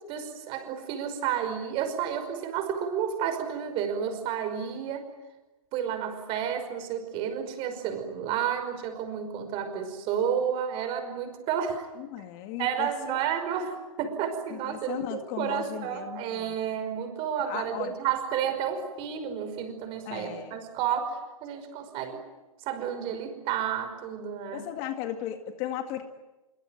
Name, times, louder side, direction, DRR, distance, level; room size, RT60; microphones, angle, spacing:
voice 1, 0.1-5.1 5.7-11.9 12.6-22.2 22.7-24.7, right 8 dB, 30° right, 7 dB, 5.5 m, -31 dB
voice 2, 12.0-13.2 14.5-16.5 17.4-17.9 20.1-20.6 24.5-26.0, left 11 dB, 35° left, 7 dB, 2.0 m, -36 dB
25.5 x 23.5 x 9.4 m, 1.1 s
hypercardioid pair, 140°, 18 cm